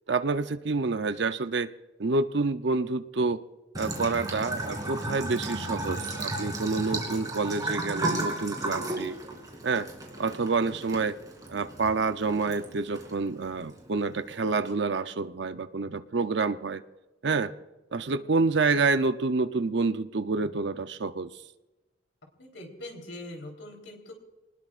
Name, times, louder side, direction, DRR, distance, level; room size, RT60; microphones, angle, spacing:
voice 1, 0.1-1.7 2.0-3.4 3.8-9.1 9.6-9.9 10.2-11.2 11.5-16.8 17.2-17.5 17.9-21.3, right 4 dB, 65° right, 11 dB, 0.7 m, -28 dB
Bathtub (filling or washing) / Trickle dribble, 3.7-14.7, right 2 dB, 20° right, 2.9 m, -35 dB
voice 2, 22.4-24.1, left 1 dB, 85° left, 1 dB, 3.7 m, -42 dB
27.5 x 20.0 x 2.5 m, 1.1 s
head